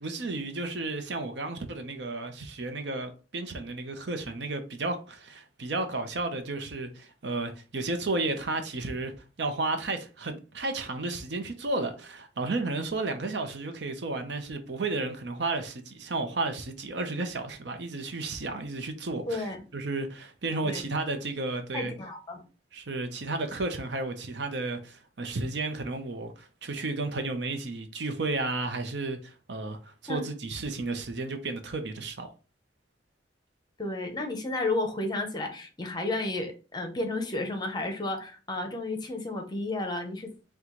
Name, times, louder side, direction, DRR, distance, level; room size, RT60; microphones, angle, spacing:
voice 1, 0.0-9.1 9.4-21.9 22.7-32.3, right 2 dB, 70° right, 0.7 m, -33 dB
voice 2, 19.3-19.6 20.6-20.8 21.7-22.4 30.1-30.2 33.8-40.3, left 2 dB, 25° left, 0.8 m, -32 dB
4.5 x 2.3 x 3.8 m
head